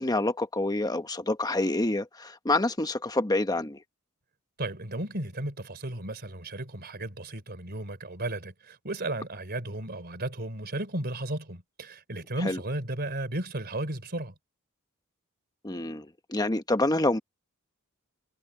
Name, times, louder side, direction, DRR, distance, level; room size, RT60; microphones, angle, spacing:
voice 1, 0.0-3.8 12.4-12.6 15.6-17.2, left 2 dB, 20° left, 1.1 m, -27 dB
voice 2, 4.6-14.3, right 1 dB, 45° right, 3.7 m, -34 dB
head